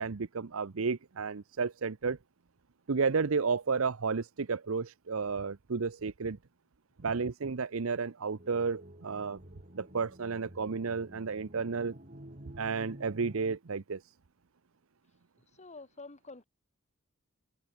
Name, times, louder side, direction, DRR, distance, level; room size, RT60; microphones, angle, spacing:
voice 1, 0.0-2.2 2.9-6.4 7.0-9.4 9.7-11.9 12.6-14.0, right 5 dB, 70° right, 0.7 m, -32 dB
sound 1, 8.4-13.6, right 1 dB, 40° right, 4.2 m, -50 dB
voice 2, 15.5-16.4, left 3 dB, 35° left, 1.6 m, -48 dB
open air
head